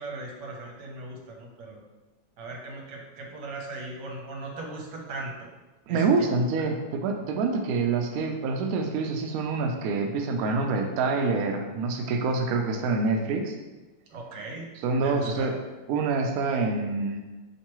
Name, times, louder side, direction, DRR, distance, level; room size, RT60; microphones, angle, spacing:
voice 1, 0.0-1.8 2.4-5.3 5.9-6.3 14.1-14.7 15.0-15.5, right 2 dB, 70° right, 0 dB, 1.3 m, -38 dB
voice 2, 5.9-13.5 14.8-15.5 15.9-17.2, right 4 dB, 85° right, 3 dB, 0.7 m, -26 dB
4.4 x 3.2 x 3.0 m, 1.2 s
omnidirectional pair, 2.1 m